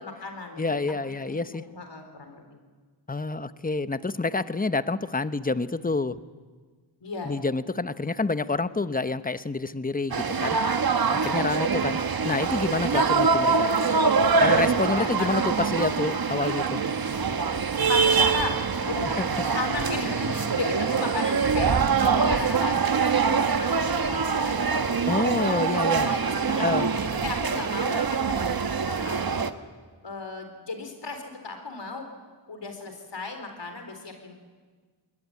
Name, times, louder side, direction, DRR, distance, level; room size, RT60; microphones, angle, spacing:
voice 1, 0.0-0.8 1.2-2.6 7.0-7.3 14.9-15.3 17.8-18.6 18.8-19.1 19.4-24.6 25.2-28.5 28.8-29.4 30.0-32.0 32.5-34.3, left 3 dB, 60° left, 5 dB, 4.2 m, -35 dB
voice 2, 0.6-1.6 3.1-6.2 7.2-10.7 11.1-12.0 12.2-13.7 14.4-16.8 19.2-19.3 25.1-26.2 26.5-26.9, left 3 dB, 20° left, 13 dB, 0.9 m, -28 dB
sound 1, 10.1-29.5, right 5 dB, 45° right, 1.2 m, -24 dB
21.0 x 18.0 x 10.0 m, 1.5 s
cardioid pair, 50°, 48 cm